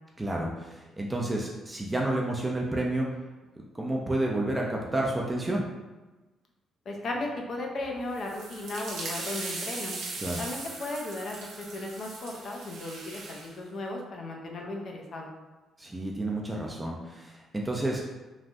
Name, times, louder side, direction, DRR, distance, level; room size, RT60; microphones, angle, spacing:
voice 1, 0.2-3.1 3.7-5.7 10.2-10.4 15.8-18.0, right 1 dB, 15° right, -1 dB, 0.4 m, -30 dB
voice 2, 6.9-10.0 10.4-15.3, left 2 dB, 55° left, 0 dB, 0.6 m, -36 dB
sound 1, 8.1-13.5, right 3 dB, 85° right, 0.6 m, -39 dB
3.3 x 2.3 x 2.6 m, 1.2 s
cardioid pair, 90°, 0 cm